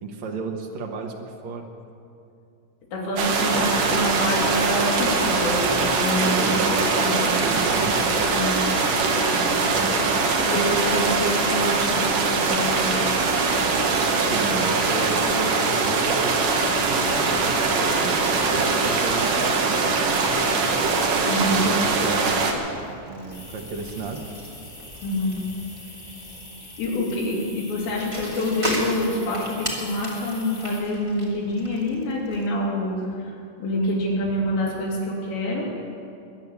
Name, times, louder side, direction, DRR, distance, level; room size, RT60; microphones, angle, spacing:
voice 1, 0.0-1.7 6.2-6.8 7.4-8.0 9.5-10.0 13.0-13.1 14.3-19.5 20.7-21.0 21.2-22.6 23.0-24.2, right 3 dB, 80° right, 2 dB, 1.5 m, -33 dB
voice 2, 2.9-6.7 7.0-7.4 8.3-8.6 10.4-13.0 21.3-21.6 25.0-25.4 26.6-33.3 33.6-35.7, left 1 dB, 80° left, -4 dB, 5.2 m, -26 dB
sound 1, 3.2-22.5, right 4 dB, 60° right, 2.5 m, -22 dB
Bicycle, 17.0-32.5, right 1 dB, 15° right, 1.3 m, -38 dB
sound 2, 23.3-30.8, left 2 dB, 35° left, 5.4 m, -44 dB
22.5 x 9.4 x 6.9 m, 2.6 s
omnidirectional pair, 5.0 m